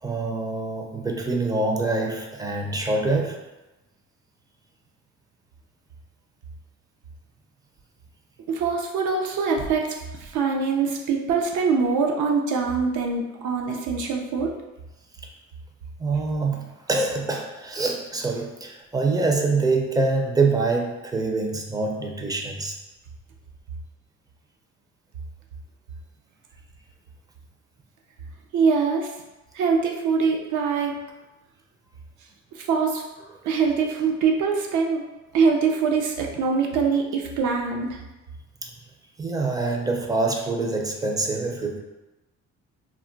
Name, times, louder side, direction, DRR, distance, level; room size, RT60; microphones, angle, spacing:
voice 1, 0.0-3.4 16.0-22.8 38.6-38.7 39.2-41.8, right 3 dB, 15° right, 1 dB, 0.4 m, -25 dB
voice 2, 8.5-14.5 28.5-29.1 29.5-30.9 32.5-33.0 33.4-35.0 35.3-38.0, right 5 dB, 75° right, 1 dB, 0.6 m, -23 dB
2.3 x 2.2 x 3.7 m, 1.1 s
cardioid pair, 90°, 30 cm